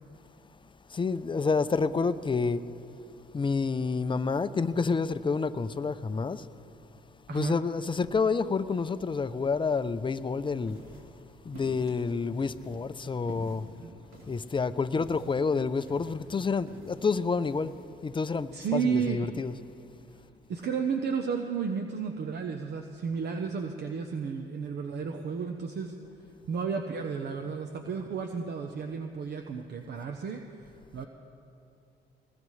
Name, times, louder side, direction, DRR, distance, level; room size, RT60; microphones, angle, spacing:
voice 1, 0.9-2.6 3.3-6.5 7.3-10.8 11.4-13.7 14.3-17.7 18.0-19.6, left 4 dB, 25° left, 0.5 m, -29 dB
sound 1, 10.6-17.8, right 1 dB, 85° right, 3.5 m, -50 dB
voice 2, 18.5-19.2 20.5-25.9 26.5-30.4 30.9-31.1, right 6 dB, 55° right, 0.8 m, -32 dB
20.0 x 20.0 x 3.2 m
cardioid pair, 90°, 20 cm